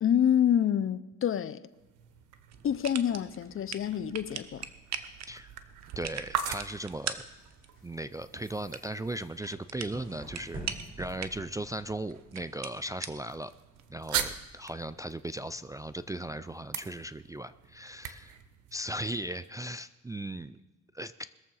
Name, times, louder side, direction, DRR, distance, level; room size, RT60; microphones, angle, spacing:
voice 1, 0.0-1.6 2.6-4.7, left 9 dB, 45° left, 0.6 m, -27 dB
sound 1, 1.7-19.5, right 9 dB, 85° right, 1.0 m, -42 dB
sound 2, 2.5-14.4, right 8 dB, 60° right, 1.0 m, -43 dB
voice 2, 6.0-7.3 7.8-10.7 11.0-13.5 13.9-18.3 18.7-20.6 20.9-21.3, right 1 dB, 10° right, 0.3 m, -37 dB
sound 3, 6.5-12.2, right 1 dB, 30° right, 4.8 m, -47 dB
21.0 x 7.3 x 5.5 m
cardioid pair, 90°, 30 cm